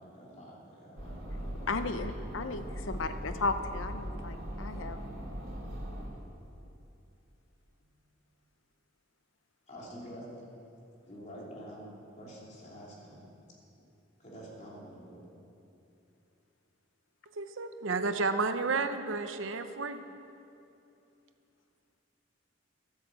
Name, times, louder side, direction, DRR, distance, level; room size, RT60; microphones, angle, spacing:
voice 1, 0.0-1.7 9.7-10.3 11.1-13.2 14.2-15.3, equal, 35° left, -4 dB, 3.0 m, -47 dB
sound 1, 1.0-6.1, equal, 55° right, 3.8 m, -39 dB
voice 2, 1.7-5.0, left 3 dB, 90° left, 9 dB, 0.7 m, -35 dB
voice 3, 17.4-20.0, right 4 dB, 80° right, 9 dB, 0.8 m, -31 dB
13.0 x 8.7 x 7.8 m, 2.7 s
head